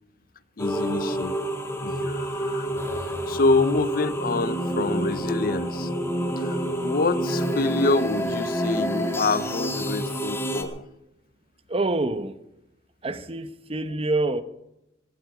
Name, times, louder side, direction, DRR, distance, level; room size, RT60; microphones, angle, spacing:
voice 1, 0.6-1.4 1.8-2.7 3.3-5.9 6.4-10.8, left 3 dB, 55° left, 0.6 m, -26 dB
sound 1, 0.6-10.6, equal, 15° left, 2.1 m, -28 dB
voice 2, 11.7-12.4 13.0-14.4, right 2 dB, 35° right, 0.9 m, -26 dB
17.5 x 15.0 x 4.9 m
head